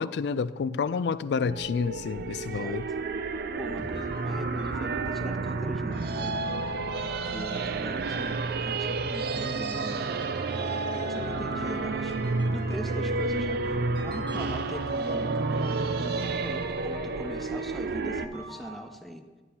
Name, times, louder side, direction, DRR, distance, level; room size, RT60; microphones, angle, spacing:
voice 1, 0.0-2.9, left 5 dB, 65° left, 0.3 m, -29 dB
sound 1, 1.4-18.3, right 3 dB, 60° right, 0.4 m, -30 dB
voice 2, 2.3-2.8 3.6-6.4 7.0-10.1 10.8-15.5 15.9-19.3, equal, ahead, 0.5 m, -41 dB
sound 2, 3.2-18.8, equal, 25° right, 1.8 m, -44 dB
11.0 x 9.6 x 2.8 m
head